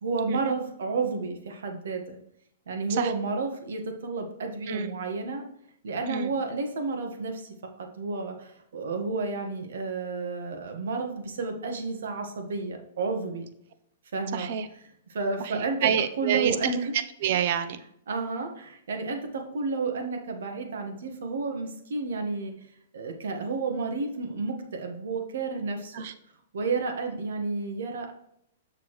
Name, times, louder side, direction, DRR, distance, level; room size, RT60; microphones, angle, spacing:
voice 1, 0.0-2.2 2.7-5.5 5.8-13.5 14.1-14.5 15.1-15.9 16.2-16.9 18.1-22.5 22.9-25.9 26.5-28.1, right 4 dB, 80° right, 4 dB, 1.5 m, -31 dB
voice 2, 4.7-5.0 6.1-6.4 14.3-14.7 15.4-17.8 25.9-26.1, right 8 dB, 50° right, 11 dB, 0.7 m, -28 dB
6.9 x 6.7 x 3.2 m, 0.73 s
hypercardioid pair, 155°, 0 cm